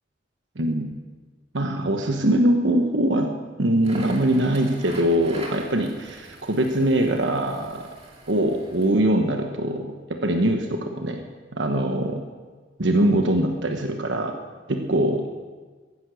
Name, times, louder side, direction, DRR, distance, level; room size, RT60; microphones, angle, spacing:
voice 1, 0.6-0.9 1.5-3.3 3.6-7.8 8.3-9.9 10.2-11.2 11.5-12.2 12.8-14.3 14.7-15.3, right 1 dB, 85° right, 4 dB, 1.2 m, -22 dB
Crackle, 3.7-9.0, right 2 dB, 35° right, 2.4 m, -42 dB
15.0 x 11.0 x 6.4 m, 1.4 s
head